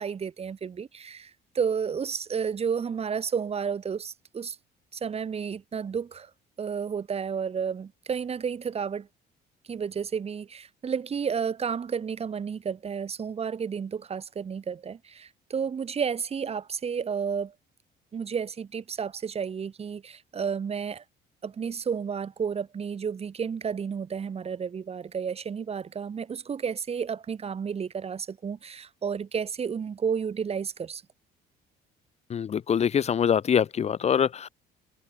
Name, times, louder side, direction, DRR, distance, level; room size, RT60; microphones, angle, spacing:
voice 1, 0.0-4.6 4.9-6.3 6.6-9.1 9.7-17.5 18.1-21.0 21.4-31.0, right 6 dB, 35° right, 3.8 m, -31 dB
voice 2, 32.3-34.5, left 8 dB, 40° left, 1.0 m, -24 dB
cardioid pair, 110°, 17 cm